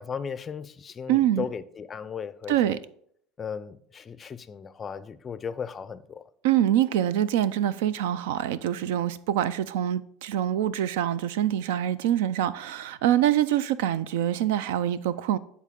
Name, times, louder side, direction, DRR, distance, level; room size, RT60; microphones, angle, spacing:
voice 1, 0.0-2.8 3.4-6.2, left 6 dB, 25° left, 0.4 m, -36 dB
voice 2, 1.1-1.4 2.5-2.8 6.4-15.4, right 11 dB, 85° right, 0.4 m, -25 dB
9.9 x 4.1 x 3.6 m
supercardioid pair, 135°, 0 cm